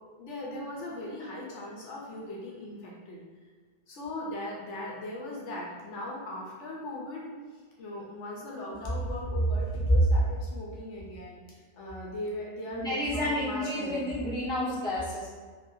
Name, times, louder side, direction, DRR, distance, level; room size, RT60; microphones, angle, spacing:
voice 1, 0.2-3.2 3.9-14.1, left 1 dB, 75° left, -4 dB, 1.0 m, -39 dB
voice 2, 12.7-15.3, left 1 dB, 5° left, -12 dB, 1.3 m, -30 dB
3.8 x 2.7 x 2.6 m, 1.5 s
omnidirectional pair, 1.3 m